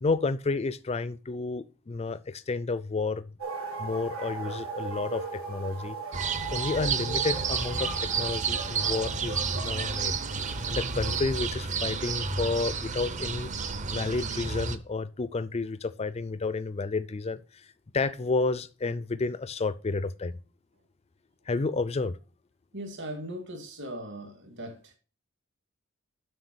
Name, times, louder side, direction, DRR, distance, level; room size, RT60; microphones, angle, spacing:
voice 1, 0.0-3.3 3.8-6.0 6.5-7.9 8.2-10.1 10.7-13.5 13.9-17.7 17.9-20.3 21.5-22.2, left 3 dB, 30° left, 0.4 m, -31 dB
sound 1, 3.4-11.5, right 3 dB, 80° right, 3.8 m, -38 dB
sound 2, 6.1-14.8, right 5 dB, 35° right, 0.7 m, -31 dB
voice 2, 22.7-25.0, right 1 dB, 60° right, 2.3 m, -39 dB
7.9 x 6.0 x 6.2 m
head